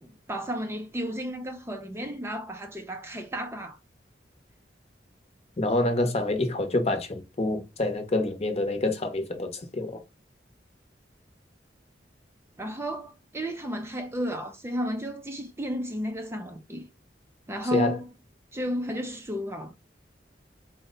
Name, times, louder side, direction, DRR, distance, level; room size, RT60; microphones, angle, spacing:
voice 1, 0.0-3.8 12.6-16.9 17.5-18.1 18.5-19.7, equal, 15° right, 0.4 m, -33 dB
voice 2, 5.6-10.0 17.7-18.0, left 2 dB, 35° left, 0.8 m, -27 dB
4.3 x 2.1 x 3.7 m
head